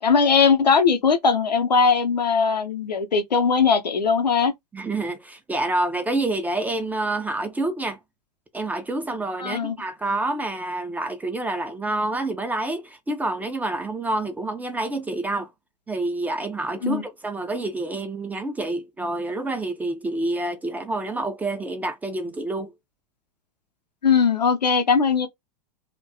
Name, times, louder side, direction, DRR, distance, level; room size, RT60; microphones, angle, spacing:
voice 1, 0.0-4.5 9.4-9.8 16.8-17.0 24.0-25.3, left 5 dB, 80° left, 0.6 m, -20 dB
voice 2, 4.7-8.0 8.5-15.5 15.9-22.7, right 2 dB, 10° right, 0.3 m, -28 dB
2.2 x 2.2 x 2.5 m
figure-of-eight pair, 95°, 21 cm